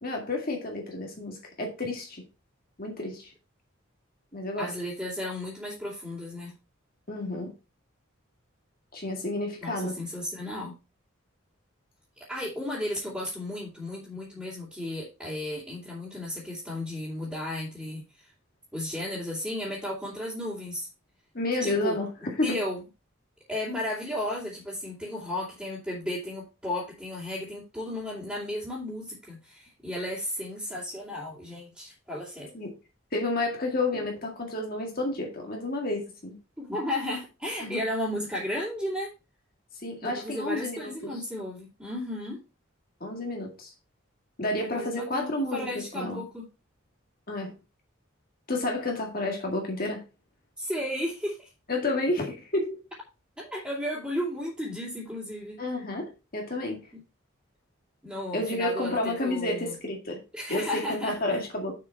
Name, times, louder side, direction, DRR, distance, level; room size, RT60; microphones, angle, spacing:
voice 1, 0.0-2.2 2.8-3.3 4.3-4.7 7.1-7.5 8.9-10.0 21.3-22.6 32.5-32.7 33.1-36.4 37.6-37.8 39.8-41.2 43.0-43.7 44.4-46.2 47.3-47.5 48.5-50.0 51.7-52.8 55.6-56.8 58.3-60.2 60.5-61.8, left 2 dB, 45° left, 2.0 m, -30 dB
voice 2, 4.6-6.5 9.6-10.7 12.3-18.3 18.7-20.9 21.6-22.0 22.4-22.8 23.5-32.5 36.6-39.1 40.0-42.4 44.7-46.4 50.6-51.5 53.4-55.6 58.0-59.7 60.3-61.4, left 1 dB, 5° right, 2.9 m, -34 dB
6.9 x 6.5 x 4.6 m
head